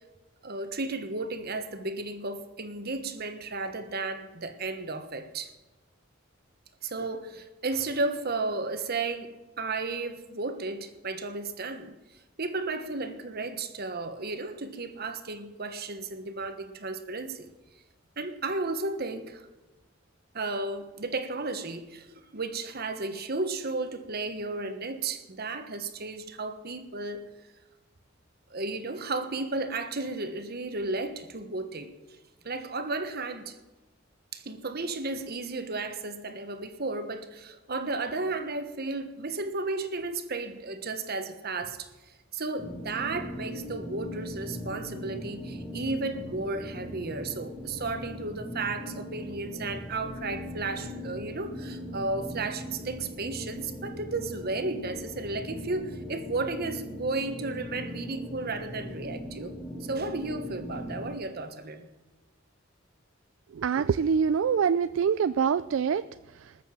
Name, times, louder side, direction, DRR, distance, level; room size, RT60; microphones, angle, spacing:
voice 1, 0.4-5.5 6.8-12.0 12.4-17.5 18.2-19.4 20.3-27.3 28.5-31.9 32.4-33.6 34.3-59.5 59.8-61.9, right 3 dB, 50° right, 1.3 m, -34 dB
sound 1, 42.6-61.2, equal, 20° left, 2.2 m, -39 dB
voice 2, 63.5-66.6, right 6 dB, 70° right, 0.3 m, -25 dB
20.0 x 6.9 x 7.5 m
head